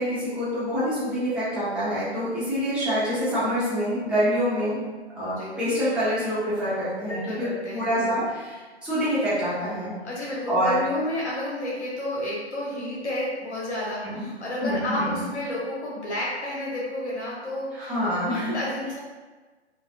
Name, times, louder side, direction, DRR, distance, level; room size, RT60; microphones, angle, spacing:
voice 1, 0.0-4.8 5.1-7.4 7.7-9.9 10.5-10.8 14.0-14.3 14.6-15.2 17.7-18.5, equal, 5° right, -12 dB, 1.1 m, -26 dB
voice 2, 7.1-8.3 10.0-19.0, left 1 dB, 75° left, -5 dB, 1.3 m, -31 dB
5.5 x 2.5 x 2.5 m, 1.3 s
figure-of-eight pair, 135°, 34 cm